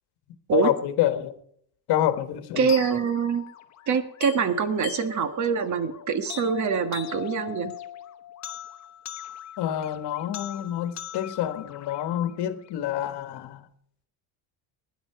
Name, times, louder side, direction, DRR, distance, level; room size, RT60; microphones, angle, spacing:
voice 1, 0.5-1.3 1.9-2.7 9.6-13.7, left 11 dB, 65° left, 1.5 m, -27 dB
voice 2, 2.6-3.4 3.9-7.7, right 6 dB, 45° right, 1.5 m, -25 dB
sound 1, 2.7-12.7, left 9 dB, 40° left, 1.2 m, -40 dB
16.0 x 10.0 x 5.7 m
cardioid pair, 140°, 42 cm